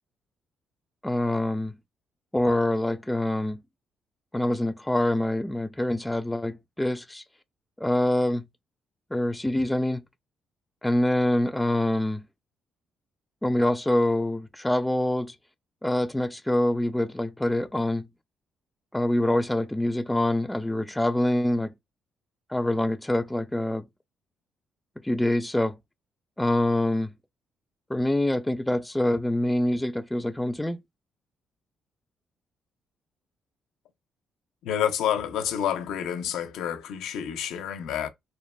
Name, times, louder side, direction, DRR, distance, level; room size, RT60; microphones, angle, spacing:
voice 1, 1.0-1.8 2.3-3.6 4.3-7.2 7.8-8.5 9.1-10.0 10.8-12.2 13.4-15.3 15.8-18.1 18.9-21.7 22.5-23.9 25.0-25.8 26.4-27.1 27.9-30.8, left 1 dB, 5° left, 0.3 m, -25 dB
voice 2, 34.6-38.1, left 9 dB, 85° left, 0.5 m, -29 dB
3.1 x 2.1 x 2.2 m
cardioid pair, 90°, 0 cm